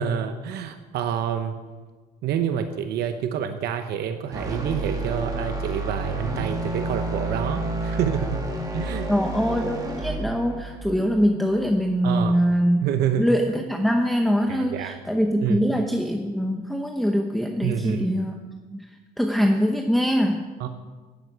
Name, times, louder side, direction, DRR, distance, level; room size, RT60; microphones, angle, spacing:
voice 1, 0.0-1.6 2.2-8.4 8.7-9.1 12.0-12.4 12.8-13.3 14.5-15.0 15.4-15.6 17.6-18.1 20.6-20.7, right 8 dB, 70° right, 8 dB, 0.9 m, -27 dB
sound 1, 4.3-12.5, right 2 dB, 20° right, 2.1 m, -30 dB
voice 2, 9.1-12.8 13.2-18.4 18.7-18.9 19.2-20.4, equal, ahead, 3 dB, 0.9 m, -23 dB
10.5 x 7.8 x 8.2 m, 1.4 s
cardioid pair, 110°, 17 cm